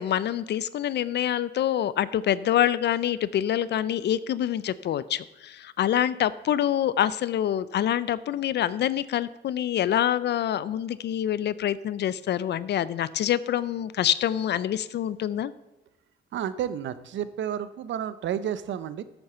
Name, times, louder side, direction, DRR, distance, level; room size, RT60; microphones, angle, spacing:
voice 1, 0.0-15.5, left 11 dB, 60° left, 17 dB, 0.4 m, -26 dB
voice 2, 16.3-19.0, right 9 dB, 70° right, 14 dB, 0.7 m, -31 dB
8.7 x 7.0 x 6.8 m, 1.1 s
cardioid pair, 90°, 20 cm